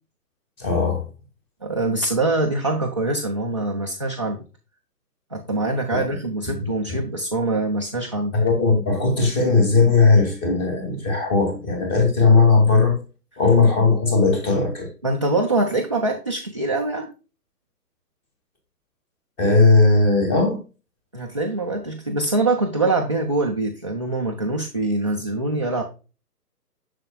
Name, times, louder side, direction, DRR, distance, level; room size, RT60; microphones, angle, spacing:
voice 1, 0.6-1.0 5.9-6.0 6.5-6.6 8.3-13.0 13.4-14.9 19.4-20.6, left 3 dB, 20° left, 3 dB, 2.3 m, -18 dB
voice 2, 1.6-4.4 5.3-8.4 15.0-17.1 21.1-25.8, right 2 dB, 20° right, -1 dB, 0.4 m, -24 dB
7.6 x 6.6 x 2.2 m, 0.32 s
figure-of-eight pair, 140°, 48 cm